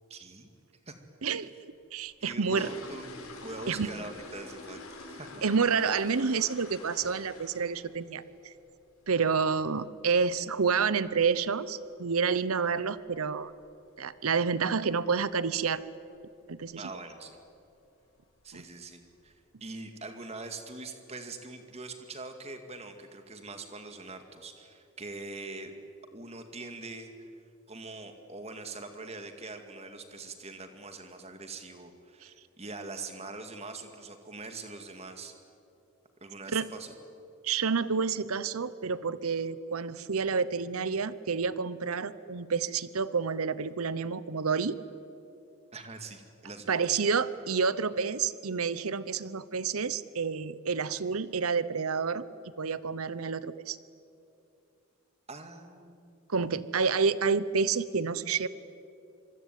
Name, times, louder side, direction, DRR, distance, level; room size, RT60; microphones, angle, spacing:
voice 1, 0.1-0.5 0.9-1.0 2.2-5.4 16.7-17.4 18.4-19.3 19.6-25.7 26.1-27.3 27.7-35.3 36.2-36.9 45.7-46.8 55.3-56.3, right 3 dB, 30° right, 7 dB, 2.3 m, -43 dB
voice 2, 1.9-2.7 3.7-3.9 5.4-8.5 9.1-13.5 14.0-15.8 16.5-16.9 18.5-18.6 32.2-32.3 36.5-36.7 37.4-44.8 46.7-52.2 52.6-53.8 56.3-58.5, right 5 dB, 80° right, 16 dB, 0.8 m, -29 dB
sound 1, 2.0-7.9 8.2-8.5 8.8-8.9 9.3-9.4 9.8-10.0 10.3-10.4 11.0-11.1 11.3-11.5 12.0-12.3 12.6-12.7 13.1-13.3 13.6-13.7 14.1-14.2 14.8-15.2 15.5-15.8 16.2-16.3 16.7-16.8 17.5-17.7 18.1-18.6 19.0-19.1, left 2 dB, 80° left, 5.1 m, -46 dB
26.0 x 24.0 x 9.3 m, 2.7 s
head